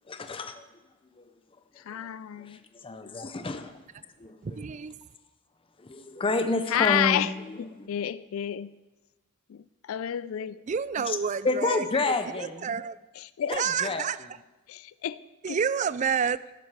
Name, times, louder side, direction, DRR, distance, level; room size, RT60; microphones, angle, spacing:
voice 1, 0.1-0.7 1.2-1.3 2.5-3.7 4.2-4.4 5.8-7.3 7.8-7.9 11.4-12.5 13.5-14.0, left 3 dB, 25° left, 8 dB, 0.6 m, -29 dB
voice 2, 1.8-2.6 6.7-8.8 9.5-10.6 13.2-13.5 14.7-15.6, left 10 dB, 70° left, 17 dB, 0.4 m, -30 dB
voice 3, 4.4-5.0 10.7-13.1 13.5-14.4 15.4-16.4, right 6 dB, 35° right, 17 dB, 0.3 m, -30 dB
12.5 x 11.5 x 4.7 m, 1.1 s
head